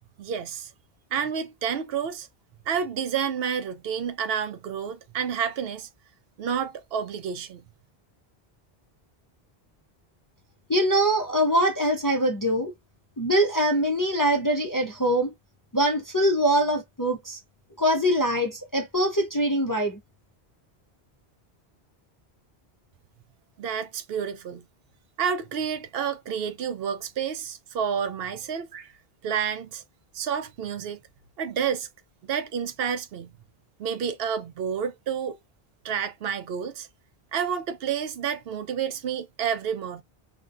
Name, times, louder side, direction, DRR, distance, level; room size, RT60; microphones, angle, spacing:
voice 1, 0.2-0.7 1.1-2.3 2.7-5.9 6.4-7.7 23.6-24.6 25.2-28.9 29.2-29.8 30.1-31.0 31.4-31.9 32.3-33.3 33.8-35.4 35.8-36.9 37.3-40.0, right 7 dB, 70° right, 0.8 m, -29 dB
voice 2, 10.7-12.7 13.2-15.3 15.7-17.4 17.8-20.0, equal, 25° left, 0.4 m, -23 dB
5.0 x 2.1 x 2.4 m
omnidirectional pair, 1.1 m